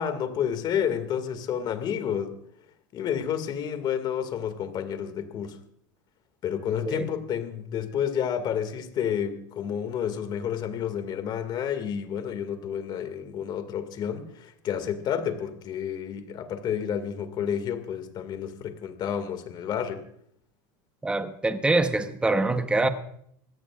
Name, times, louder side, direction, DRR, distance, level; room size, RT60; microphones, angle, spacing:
voice 1, 0.0-2.3 2.9-5.6 6.4-20.1, left 8 dB, 45° left, 2.1 m, -30 dB
voice 2, 21.0-22.9, right 2 dB, 10° right, 1.0 m, -24 dB
24.0 x 17.0 x 2.5 m
supercardioid pair, 115°, 11 cm